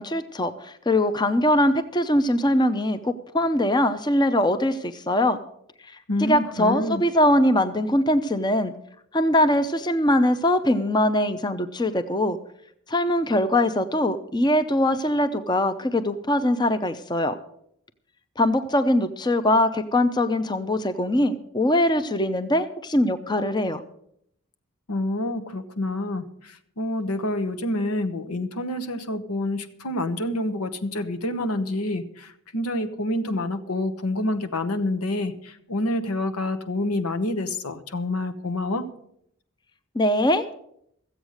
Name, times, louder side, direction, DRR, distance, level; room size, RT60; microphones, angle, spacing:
voice 1, 0.0-5.4 5.9-8.7 9.1-12.4 12.9-17.4 18.4-23.8 39.9-40.4, left 1 dB, 20° left, 10 dB, 0.6 m, -22 dB
voice 2, 6.1-7.0 24.9-38.9, left 1 dB, 90° left, 8 dB, 1.1 m, -27 dB
15.0 x 8.1 x 6.4 m, 0.72 s
head